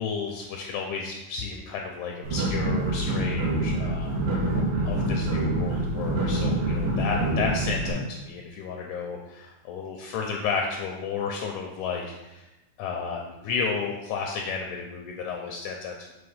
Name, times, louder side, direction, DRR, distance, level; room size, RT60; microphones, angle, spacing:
voice 1, 0.0-4.1 4.4-4.5 4.8-12.5 12.8-16.1, left 5 dB, 80° left, 1 dB, 1.8 m, -32 dB
sound 1, 2.2-7.9, right 1 dB, 70° right, 2.8 m, -26 dB
6.8 x 3.2 x 5.5 m, 1.0 s
omnidirectional pair, 4.0 m